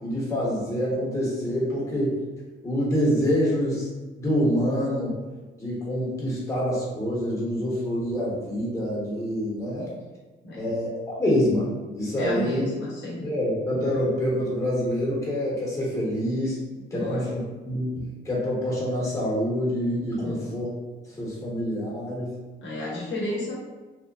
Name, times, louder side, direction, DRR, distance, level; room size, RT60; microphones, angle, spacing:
voice 1, 0.0-2.1 2.6-3.9 4.2-5.1 5.6-9.9 10.6-11.7 11.9-12.6 13.2-16.6 16.9-17.2 17.6-20.7 21.2-22.3, equal, 15° left, -5 dB, 1.0 m, -26 dB
voice 2, 12.1-13.3 16.9-17.3 20.2-20.6 22.6-23.6, left 1 dB, 65° left, -6 dB, 0.8 m, -32 dB
2.9 x 2.1 x 2.3 m, 1.2 s
cardioid pair, 105°, 20 cm